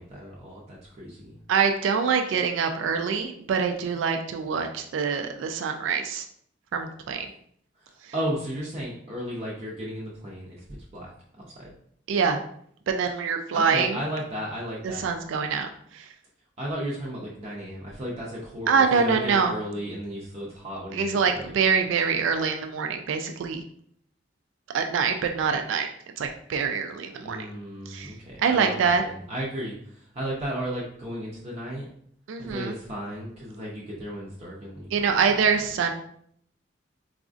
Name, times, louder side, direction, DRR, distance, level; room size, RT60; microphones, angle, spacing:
voice 1, 0.0-1.4 8.1-10.6 10.9-11.1 11.4-11.7 13.5-15.1 16.6-21.5 27.2-31.9 32.4-35.1, equal, 35° right, -4 dB, 0.5 m, -34 dB
voice 2, 1.5-6.2 6.7-7.3 12.1-12.4 12.9-14.0 14.8-16.0 18.7-19.6 20.9-23.6 24.7-25.9 26.2-27.5 27.9-28.1 28.4-29.0 32.3-32.8 34.9-35.9, right 6 dB, 85° right, 5 dB, 0.3 m, -25 dB
4.0 x 2.5 x 2.4 m, 0.65 s
head